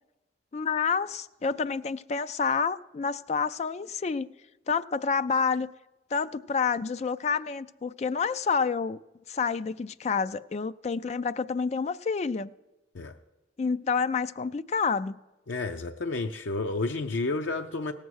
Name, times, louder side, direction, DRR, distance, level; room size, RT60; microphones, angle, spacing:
voice 1, 0.5-4.3 4.7-5.7 6.1-9.0 9.3-12.5 13.6-15.2, left 5 dB, 35° left, 0.3 m, -28 dB
voice 2, 15.5-17.9, left 3 dB, 85° left, 0.6 m, -31 dB
17.0 x 7.3 x 6.3 m
head